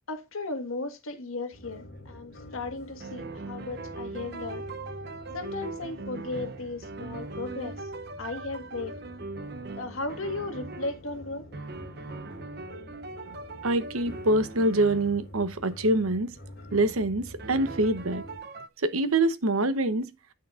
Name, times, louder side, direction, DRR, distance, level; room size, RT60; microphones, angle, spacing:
voice 1, 0.1-4.6 5.3-7.9 8.2-9.0 9.8-11.5, left 3 dB, 80° left, 1.6 m, -36 dB
sound 1, 1.5-18.4, left 1 dB, 50° left, 2.6 m, -47 dB
sound 2, 2.0-2.7 3.0-11.0 11.5-15.2 16.7-16.9 17.4-18.7, right 3 dB, 50° right, 0.6 m, -40 dB
voice 2, 13.6-16.3 16.7-18.2 18.8-20.1, right 2 dB, 85° right, 1.0 m, -25 dB
9.5 x 8.7 x 2.4 m
head